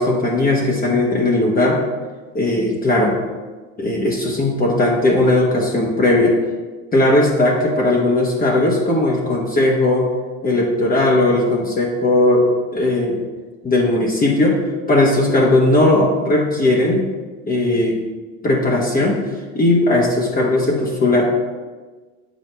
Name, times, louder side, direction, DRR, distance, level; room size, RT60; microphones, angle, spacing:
voice 1, 0.0-1.8 2.3-3.2 3.8-6.3 6.9-10.1 10.4-12.4 12.7-13.2 13.6-14.6 14.9-17.1 17.5-18.0 18.4-19.2 19.5-21.2, left 2 dB, 25° left, -2 dB, 1.1 m, -17 dB
7.3 x 5.0 x 3.3 m, 1.3 s
hypercardioid pair, 90°, 34 cm